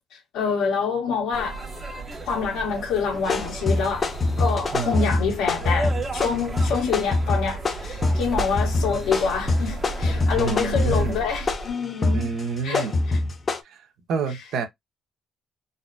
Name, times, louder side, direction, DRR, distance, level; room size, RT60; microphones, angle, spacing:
voice 1, 0.3-1.6 2.2-4.1 4.4-12.3 12.6-12.9, left 6 dB, 90° left, 1.5 m, -26 dB
sound 1, 1.3-11.7, right 2 dB, 25° right, 0.9 m, -34 dB
sound 2, 3.2-13.6, left 2 dB, 30° left, 0.6 m, -25 dB
voice 2, 4.7-5.3 10.3-11.2 12.1-12.9 13.6-13.8 14.1-14.6, right 5 dB, 70° right, 1.1 m, -28 dB
4.0 x 2.1 x 2.6 m
cardioid pair, 150°, 0 cm